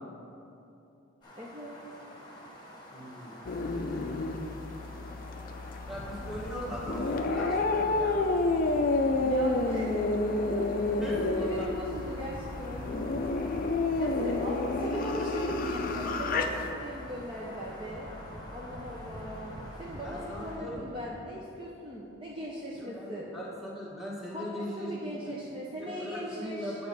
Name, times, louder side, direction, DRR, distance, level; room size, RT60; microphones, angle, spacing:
sound 1, 1.2-20.6, left 1 dB, 20° left, 1.4 m, -48 dB
voice 1, 1.4-1.8 9.2-10.0 10.6-10.9 11.2-13.1 14.0-18.1 18.5-23.3 24.3-26.8, equal, 25° right, -5 dB, 0.7 m, -39 dB
voice 2, 2.9-3.5 5.9-8.2 10.6-10.7 11.0-11.7 20.0-20.8 22.7-24.9 25.2-25.3 25.8-26.9, equal, ahead, -6 dB, 1.4 m, -40 dB
sound 2, 3.4-16.7, left 2 dB, 45° left, 0.4 m, -30 dB
sound 3, 5.8-21.2, equal, 50° right, 2.0 m, -48 dB
9.4 x 4.2 x 6.8 m, 2.8 s
head